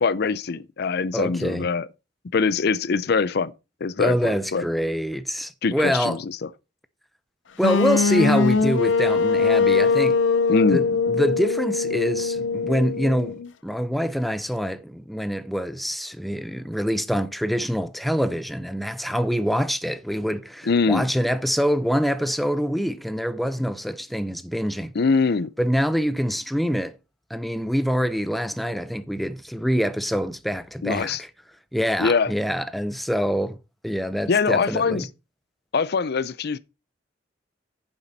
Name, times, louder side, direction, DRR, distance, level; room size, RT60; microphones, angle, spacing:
voice 1, 0.0-1.9 2.3-3.5 3.8-4.7 5.6-6.5 10.5-10.8 20.7-21.1 24.9-25.5 30.8-31.2 32.0-32.3 34.3-35.1 35.7-36.6, left 4 dB, 60° left, 0.5 m, -23 dB
voice 2, 1.1-1.7 4.0-6.2 7.6-10.2 10.7-24.9 25.6-27.0 27.3-31.3 31.7-33.6 33.8-35.1, equal, ahead, 0.5 m, -25 dB
sound 1, 7.6-13.5, left 4 dB, 85° left, 0.8 m, -21 dB
9.5 x 7.3 x 4.1 m
head